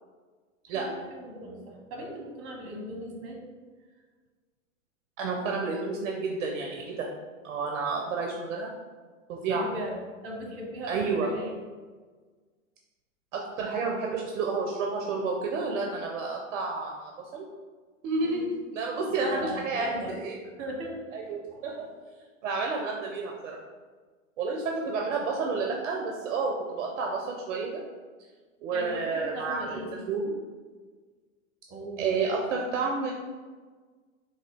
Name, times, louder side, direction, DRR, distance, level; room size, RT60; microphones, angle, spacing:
voice 1, 0.7-3.4 9.5-9.9 10.2-11.5 18.2-18.5 19.2-20.1 20.4-21.0 28.7-29.9 31.7-32.1, right 1 dB, 35° right, 0 dB, 1.1 m, -38 dB
voice 2, 5.2-7.1 7.4-8.7 9.3-9.7 10.9-11.3 13.3-17.5 18.0-19.9 20.2-20.4 21.1-21.7 22.4-23.6 24.4-27.8 28.6-30.4 32.0-33.1, right 4 dB, 65° right, 0 dB, 0.7 m, -30 dB
3.8 x 2.7 x 3.3 m, 1.4 s
hypercardioid pair, 105°, 40 cm